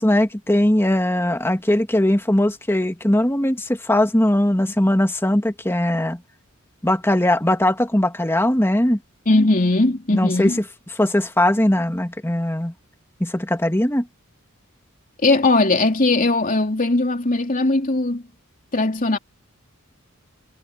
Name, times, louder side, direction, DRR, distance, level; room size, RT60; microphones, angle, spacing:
voice 1, 0.0-6.2 6.8-9.0 10.1-10.5 11.0-12.7 13.2-14.1, left 1 dB, 10° left, 1.9 m, -20 dB
voice 2, 9.3-10.6 15.2-18.2 18.7-19.2, left 2 dB, 40° left, 3.2 m, -19 dB
head